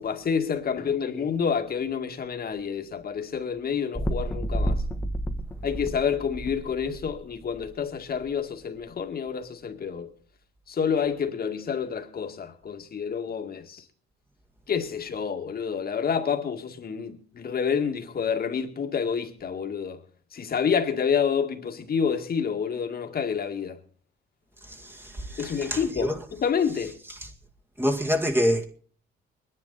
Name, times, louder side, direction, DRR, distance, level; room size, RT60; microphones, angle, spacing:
voice 1, 0.0-4.8 5.6-10.1 10.7-13.8 14.7-20.0 20.3-23.8 25.4-27.0, left 6 dB, 50° left, 2.0 m, -28 dB
sound 1, 3.9-7.7 8.3-8.4, right 1 dB, 10° left, 1.5 m, -30 dB
voice 2, 24.6-26.2 27.2-27.3 27.8-28.7, equal, 10° right, 2.0 m, -27 dB
22.5 x 10.5 x 4.1 m
cardioid pair, 90°, 20 cm